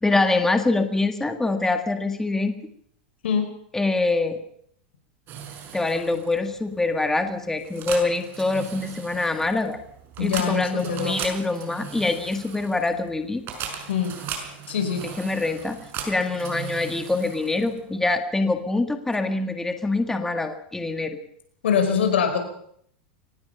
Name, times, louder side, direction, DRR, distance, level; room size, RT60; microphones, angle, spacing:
voice 1, 0.0-2.6 3.7-4.4 5.7-9.8 10.2-13.4 15.0-15.8 16.1-21.2, left 3 dB, 5° left, 7 dB, 1.9 m, -24 dB
sound 1, 5.3-18.0, right 8 dB, 40° right, 5.9 m, -38 dB
voice 2, 10.2-11.2 13.9-14.2 14.7-15.0 21.6-22.4, left 7 dB, 90° left, 7 dB, 5.1 m, -23 dB
23.5 x 19.5 x 5.8 m, 0.66 s
supercardioid pair, 125°, 6 cm